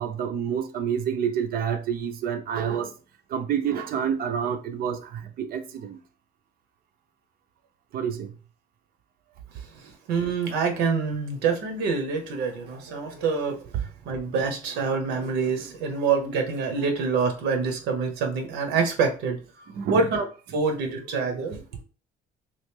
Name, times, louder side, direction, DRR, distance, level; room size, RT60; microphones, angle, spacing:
voice 1, 0.0-2.9 3.3-6.0 7.9-8.3 19.7-20.0, right 8 dB, 60° right, 0.6 m, -28 dB
voice 2, 10.1-13.6 14.1-19.4 19.9-20.2 20.5-21.8, right 5 dB, 85° right, 0.9 m, -26 dB
3.1 x 2.5 x 3.4 m
cardioid pair, 110°, 17 cm